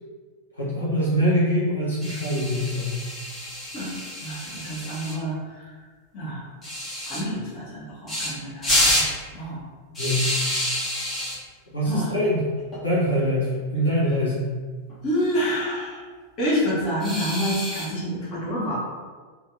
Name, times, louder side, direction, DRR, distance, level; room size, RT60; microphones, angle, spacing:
voice 1, 0.5-3.0 10.0-10.3 11.7-12.5 12.8-14.6, equal, 80° left, -8 dB, 0.8 m, -24 dB
sound 1, 2.0-5.2 6.6-7.2 8.1-8.3 8.6-9.1 10.0-11.4 12.6-12.8 13.1-13.2 13.5-13.6 14.9-15.4 17.0-17.9, left 1 dB, 20° left, 0.9 m, -27 dB
voice 2, 4.2-5.7 6.1-6.4 7.1-9.0 9.3-9.6 11.9-12.1 15.0-16.0 16.4-18.7, equal, 40° left, -7 dB, 1.1 m, -28 dB
2.8 x 2.6 x 2.5 m, 1.5 s
figure-of-eight pair, 90°, 0 cm